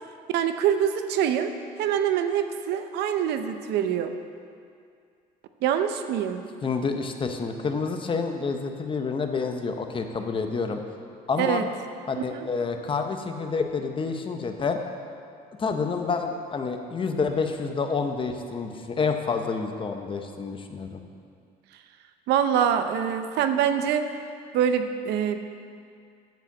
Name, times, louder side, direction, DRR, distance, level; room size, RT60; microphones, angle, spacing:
voice 1, 0.3-4.1 5.6-6.4 11.4-11.7 12.2-12.5 22.3-24.1 24.5-25.4, right 9 dB, 80° right, 8 dB, 0.6 m, -25 dB
voice 2, 6.6-10.8 11.3-11.6 12.1-14.8 15.6-21.0, left 4 dB, 30° left, 5 dB, 0.8 m, -28 dB
9.2 x 4.9 x 7.2 m, 2.3 s
cardioid pair, 110°, 17 cm